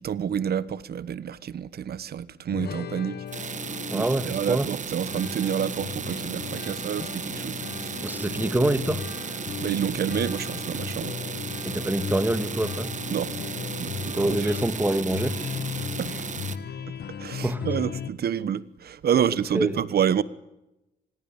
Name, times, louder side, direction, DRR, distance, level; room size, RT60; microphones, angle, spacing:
voice 1, 0.0-3.5 3.9-8.0 9.6-11.1 13.1-13.3 13.8-14.5 16.0-16.1 17.2-20.2, right 8 dB, 70° right, 1.3 m, -28 dB
sound 1, 2.5-18.1, left 7 dB, 75° left, 1.7 m, -36 dB
sound 2, 3.3-16.6, right 6 dB, 45° right, 1.5 m, -35 dB
voice 2, 3.9-4.7 8.0-9.3 11.7-12.9 14.1-15.5 17.4-17.7 19.1-19.2 19.5-19.8, right 1 dB, 10° right, 2.0 m, -26 dB
27.0 x 21.0 x 9.0 m
cardioid pair, 100°, 17 cm